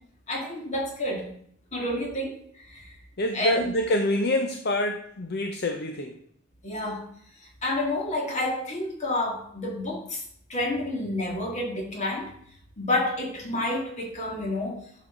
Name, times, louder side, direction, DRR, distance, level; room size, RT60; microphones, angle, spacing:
voice 1, 0.3-1.3 1.7-2.4 2.7-2.8 3.3-3.7 6.6-7.0 7.6-10.2 10.5-12.3 12.8-14.8, left 1 dB, 35° left, 0 dB, 2.3 m, -29 dB
voice 2, 3.2-6.2, left 1 dB, 55° left, 5 dB, 0.7 m, -26 dB
11.0 x 6.5 x 3.8 m, 0.63 s
head